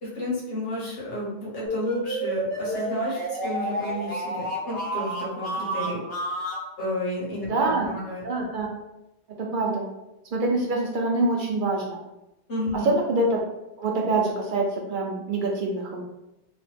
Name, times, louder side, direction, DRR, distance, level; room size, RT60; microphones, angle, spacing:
voice 1, 0.0-6.0 6.8-8.3 12.5-12.9, left 1 dB, 70° left, -6 dB, 1.3 m, -32 dB
sound 1, 1.7-6.6, right 1 dB, 85° left, 1.3 m, -30 dB
voice 2, 7.5-7.9 8.2-8.7 9.4-9.9 10.3-12.0 12.7-13.4 13.8-16.0, right 2 dB, 60° right, 0 dB, 0.6 m, -25 dB
3.0 x 2.0 x 3.3 m, 0.92 s
omnidirectional pair, 1.0 m